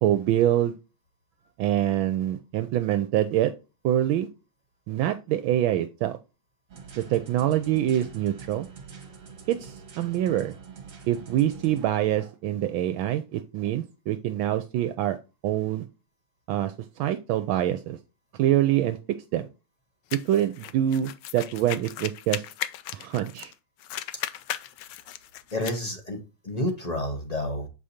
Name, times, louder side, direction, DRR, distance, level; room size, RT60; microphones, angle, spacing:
voice 1, 0.0-0.7 1.6-3.5 3.8-4.3 4.9-6.2 7.0-8.7 9.5-10.5 11.1-15.2 15.4-15.8 16.5-18.0 18.4-19.0 19.3-19.5 20.3-22.4 22.9-23.5, right 12 dB, 75° right, 10 dB, 1.4 m, -25 dB
sound 1, 6.7-11.8, right 6 dB, 45° right, 1.6 m, -44 dB
sound 2, 20.1-23.5 23.8-25.8, left 12 dB, 75° left, 1.1 m, -36 dB
voice 2, 25.5-27.7, left 1 dB, 20° left, 3 dB, 1.2 m, -30 dB
7.5 x 5.0 x 2.7 m, 0.29 s
omnidirectional pair, 2.3 m